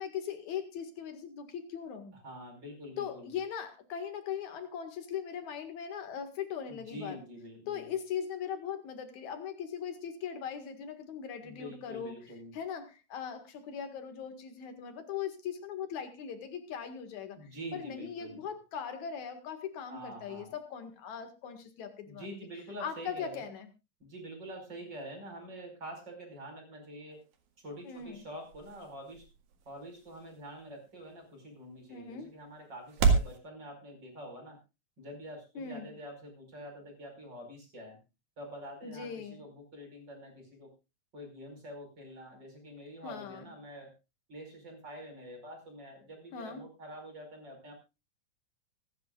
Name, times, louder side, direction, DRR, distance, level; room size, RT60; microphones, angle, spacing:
voice 1, 0.0-2.2 3.0-7.2 7.7-12.2 12.5-22.3 22.8-23.7 27.8-28.3 31.9-32.3 35.5-35.9 38.8-39.4 43.0-43.5 46.3-46.6, left 8 dB, 75° left, 7 dB, 3.3 m, -39 dB
voice 2, 2.1-3.3 6.7-7.9 11.4-12.5 17.4-18.5 19.9-20.5 22.1-23.5 24.0-27.2 27.6-29.3 29.7-34.6 35.0-38.0 38.4-40.7 41.1-43.9 44.3-47.7, equal, 35° right, 3 dB, 5.7 m, -46 dB
sound 1, 27.1-33.4, right 5 dB, 90° right, 3.3 m, -34 dB
25.0 x 10.5 x 2.4 m, 0.27 s
omnidirectional pair, 3.3 m